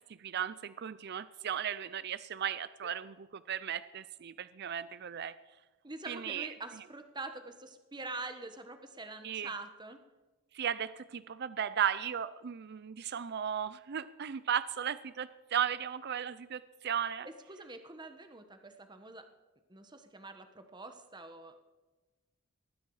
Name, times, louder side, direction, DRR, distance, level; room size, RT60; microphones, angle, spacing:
voice 1, 0.2-3.1 3.5-5.3 6.1-6.5 9.2-9.5 10.5-17.3, right 9 dB, 50° right, 15 dB, 0.5 m, -35 dB
voice 2, 5.8-10.0 17.2-19.3 19.7-21.5, right 2 dB, 20° right, 7 dB, 1.3 m, -45 dB
19.5 x 14.0 x 4.9 m, 1.2 s
head